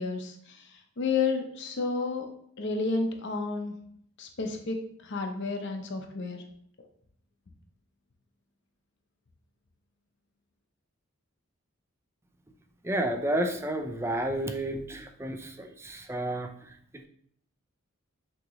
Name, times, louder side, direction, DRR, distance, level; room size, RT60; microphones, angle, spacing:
voice 1, 0.0-2.3 2.6-3.8 4.2-4.8 5.0-6.4, left 4 dB, 55° left, 4 dB, 0.6 m, -31 dB
voice 2, 12.8-17.1, right 1 dB, 10° right, 5 dB, 0.4 m, -31 dB
6.1 x 2.9 x 3.0 m, 0.67 s
head